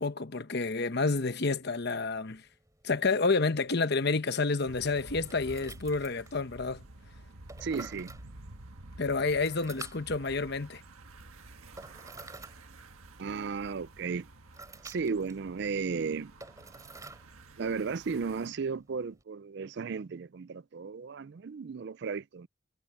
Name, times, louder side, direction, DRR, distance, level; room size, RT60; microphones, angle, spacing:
voice 1, 0.0-2.4 2.8-6.8 9.0-10.8, left 3 dB, 50° left, 1.0 m, -29 dB
sound 1, 1.7-19.2, right 3 dB, 15° right, 4.1 m, -52 dB
sound 2, 4.7-18.5, right 2 dB, 85° right, 1.6 m, -51 dB
voice 2, 7.6-8.1 13.2-14.3 14.8-16.3 17.6-22.5, right 5 dB, 50° right, 0.4 m, -34 dB
head